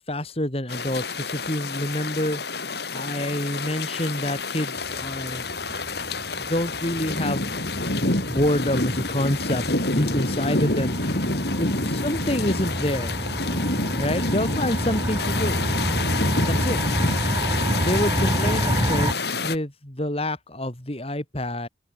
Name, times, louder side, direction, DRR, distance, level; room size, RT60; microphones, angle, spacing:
voice 1, 0.0-2.4 2.9-5.5 6.4-7.5 7.9-9.6 9.9-11.2 11.6-13.3 13.9-15.6 16.5-16.8 17.8-21.7, left 1 dB, 30° left, 3.2 m, -27 dB
sound 1, 0.7-19.6, left 2 dB, 60° left, 3.9 m, -28 dB
sound 2, 4.8-19.1, equal, 20° right, 4.6 m, -29 dB
open air
head